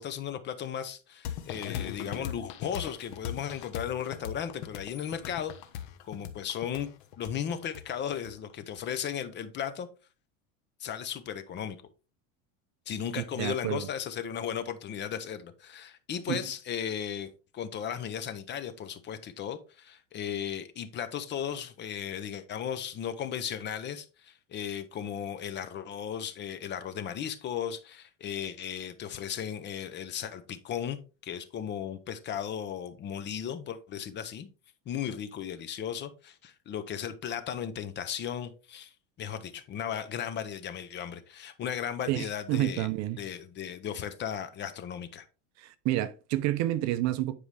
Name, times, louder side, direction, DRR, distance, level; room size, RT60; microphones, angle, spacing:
voice 1, 0.0-5.5 6.0-6.9 7.2-9.9 10.8-11.8 12.9-31.0 31.2-34.5 34.9-38.9 39.2-42.9 43.2-45.2, left 9 dB, 30° left, 0.7 m, -36 dB
sound 1, 1.2-8.8, left 9 dB, 65° left, 1.3 m, -39 dB
voice 2, 13.2-13.9 16.3-16.5 42.1-43.2 45.6-47.3, right 15 dB, 45° right, 0.6 m, -29 dB
9.6 x 4.8 x 3.3 m
supercardioid pair, 145°, 38 cm